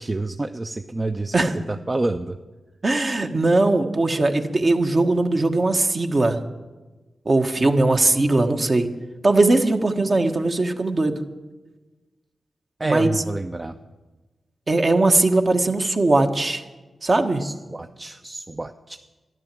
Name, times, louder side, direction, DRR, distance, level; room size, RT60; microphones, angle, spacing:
voice 1, 0.0-1.3 1.7-2.4 12.8-13.8 17.4-19.0, right 2 dB, 30° right, 7 dB, 0.6 m, -28 dB
voice 2, 2.8-6.4 7.2-8.9 9.2-11.2 12.8-13.1 14.7-16.6 17.0-17.4, right 2 dB, 45° right, 5 dB, 1.3 m, -19 dB
12.5 x 10.5 x 7.6 m, 1.2 s
cardioid pair, 50°, 0 cm